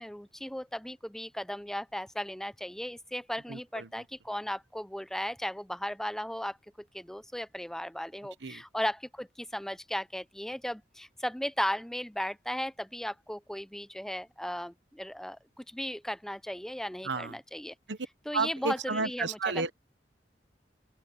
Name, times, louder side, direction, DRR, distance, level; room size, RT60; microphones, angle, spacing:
voice 1, 0.0-17.7 18.3-19.7, equal, 5° left, 0.5 m, -36 dB
voice 2, 3.5-3.9 8.4-8.6 17.0-17.4 17.9-18.0 18.3-19.7, right 4 dB, 90° right, 1.1 m, -32 dB
open air
head